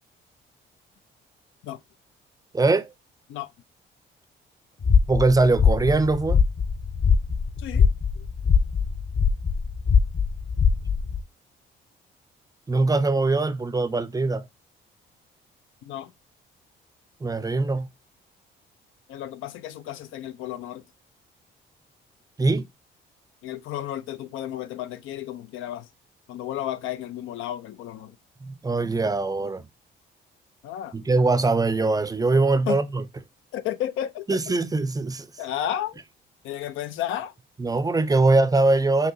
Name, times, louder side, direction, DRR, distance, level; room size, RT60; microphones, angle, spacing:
voice 1, 2.5-2.9 5.1-6.4 12.7-14.5 17.2-17.9 22.4-22.7 28.4-29.6 30.9-33.0 34.3-35.3 37.6-39.1, right 3 dB, 20° right, 0.5 m, -22 dB
sound 1, 4.8-11.2, left 6 dB, 40° left, 0.7 m, -22 dB
voice 2, 7.6-7.9 8.2-8.3 15.9-16.1 19.1-20.8 23.4-25.9 26.3-28.2 30.6-31.0 32.7-32.8 33.5-34.4 35.4-36.0 36.4-37.3, left 11 dB, 90° left, 0.5 m, -32 dB
5.7 x 2.9 x 2.7 m
cardioid pair, 90°, 20 cm